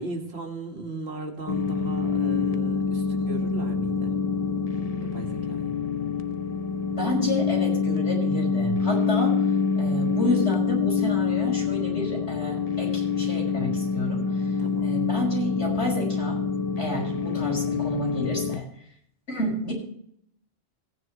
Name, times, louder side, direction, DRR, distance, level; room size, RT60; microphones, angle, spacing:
voice 1, 0.0-4.2 5.0-5.8 14.6-15.0, right 2 dB, 65° right, 2 dB, 2.2 m, -37 dB
sound 1, 1.5-18.6, left 5 dB, 40° left, 0.7 m, -26 dB
voice 2, 6.9-9.4 9.8-14.5 14.8-16.4 16.8-18.7 19.3-19.7, equal, 80° left, -2 dB, 6.0 m, -30 dB
17.5 x 9.8 x 3.1 m, 0.66 s
omnidirectional pair, 1.1 m